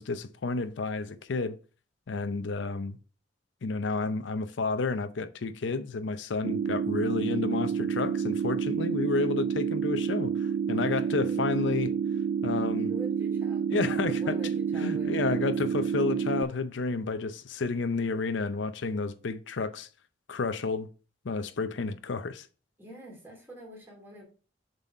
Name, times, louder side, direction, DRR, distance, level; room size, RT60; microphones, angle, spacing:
voice 1, 0.0-1.6 2.1-3.0 3.6-11.9 12.4-12.9 13.7-14.3 14.7-19.9 20.3-20.9 21.2-22.5, left 4 dB, 70° left, 0.5 m, -31 dB
sound 1, 6.4-16.4, right 7 dB, 65° right, 0.3 m, -29 dB
voice 2, 10.7-12.0 12.8-15.5 16.0-16.2 22.8-24.2, right 1 dB, 15° right, 2.6 m, -46 dB
7.1 x 4.1 x 4.1 m
head